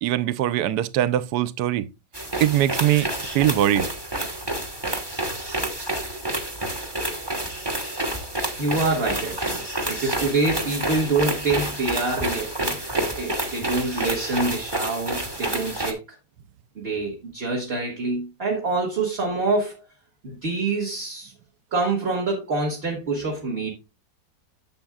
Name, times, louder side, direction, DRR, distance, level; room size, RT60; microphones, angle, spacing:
voice 1, 0.0-1.9 2.4-3.9, right 12 dB, 70° right, 1.1 m, -22 dB
sound 1, 2.1-15.9, right 1 dB, 15° right, 1.2 m, -29 dB
voice 2, 8.6-16.2 16.7-19.8 20.2-21.3 21.7-23.7, right 3 dB, 35° right, 1.6 m, -26 dB
10.5 x 7.1 x 2.4 m
omnidirectional pair, 1.9 m